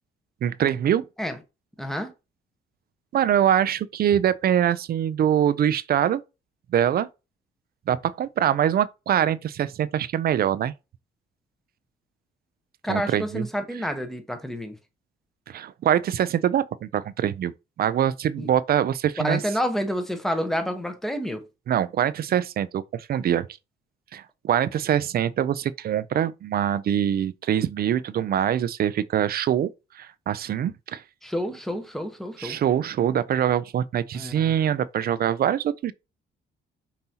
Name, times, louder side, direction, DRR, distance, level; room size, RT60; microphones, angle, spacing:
voice 1, 0.4-1.1 3.1-6.2 6.7-7.1 7.9-10.7 12.9-13.5 15.5-17.5 17.8-19.4 21.7-23.5 24.1-31.0 32.4-35.9, right 10 dB, 50° right, 0.4 m, -24 dB
voice 2, 1.8-2.1 12.8-14.8 18.4-18.5 19.2-21.5 31.2-32.6 34.1-34.5, equal, ahead, 0.9 m, -29 dB
5.4 x 2.7 x 2.8 m
cardioid pair, 90°, 20 cm